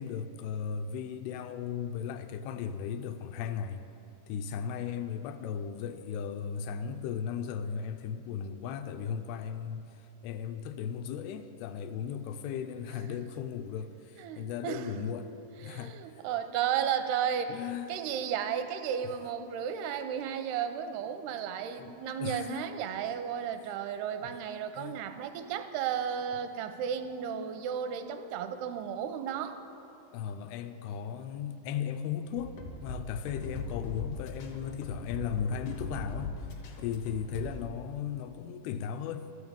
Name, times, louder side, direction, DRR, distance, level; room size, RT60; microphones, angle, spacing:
voice 1, 0.0-3.8 4.3-9.9 10.2-15.2 15.6-16.2 17.5-17.9 21.8-21.9 22.2-22.7 24.7-24.9 30.1-36.3 36.8-39.3, left 7 dB, 85° left, 8 dB, 2.5 m, -36 dB
voice 2, 14.2-15.1 15.6-29.6, right 8 dB, 85° right, 8 dB, 2.5 m, -34 dB
sound 1, 32.4-37.6, left 3 dB, 65° left, 2.4 m, -39 dB
13.0 x 6.5 x 8.6 m, 2.8 s
omnidirectional pair, 4.6 m